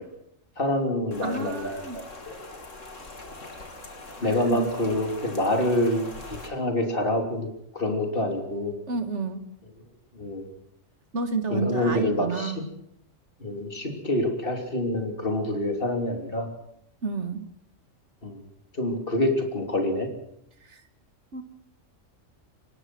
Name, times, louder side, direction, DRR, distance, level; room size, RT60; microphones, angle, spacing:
voice 1, 0.6-2.4 4.2-6.1 6.4-7.5 7.7-8.7 10.1-10.5 11.5-12.5 13.4-16.5 18.2-18.4 18.8-20.1, left 1 dB, 45° left, 3 dB, 3.4 m, -26 dB
Rain, 1.1-6.5, left 2 dB, 75° left, 3.2 m, -42 dB
voice 2, 1.2-2.0 4.5-4.7 8.9-9.5 11.1-12.7 17.0-17.5 20.7-20.8 21.3-21.4, right 4 dB, 65° right, 8 dB, 2.1 m, -30 dB
23.5 x 20.0 x 6.1 m, 0.76 s
omnidirectional pair, 1.3 m